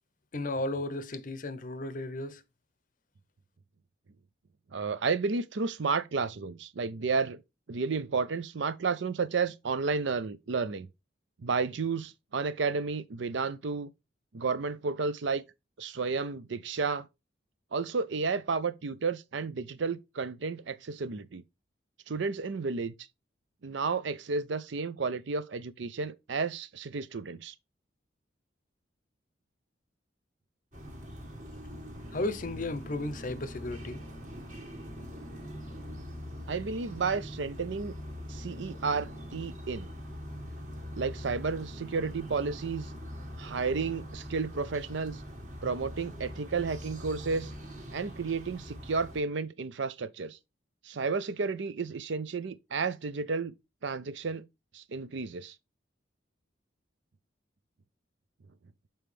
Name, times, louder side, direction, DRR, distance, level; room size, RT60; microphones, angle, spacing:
voice 1, 0.3-2.4 32.1-34.0, left 2 dB, 45° left, 0.6 m, -34 dB
voice 2, 4.7-7.4 7.7-10.9 11.4-13.9 14.3-15.4 15.8-17.1 17.7-21.4 22.1-22.9 23.6-27.5 36.5-38.0 38.3-39.9 40.9-42.9 43.4-45.2 45.6-47.5 47.9-50.4 50.8-53.5 53.8-54.4 54.7-55.6, right 4 dB, 70° right, 0.5 m, -32 dB
sound 1, 30.7-49.2, equal, 40° right, 1.7 m, -43 dB
7.1 x 4.4 x 3.2 m
head